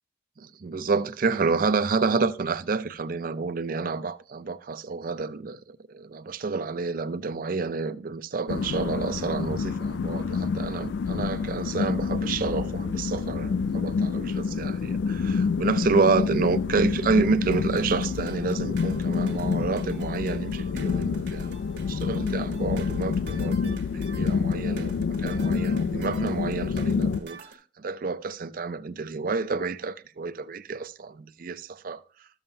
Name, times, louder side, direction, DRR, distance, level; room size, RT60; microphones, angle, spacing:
voice 1, 0.4-32.3, right 4 dB, 50° right, 0.5 m, -29 dB
sound 1, 8.5-27.2, left 5 dB, 75° left, 0.3 m, -28 dB
sound 2, 17.5-27.5, right 4 dB, 70° right, 1.3 m, -48 dB
13.0 x 7.2 x 2.7 m
head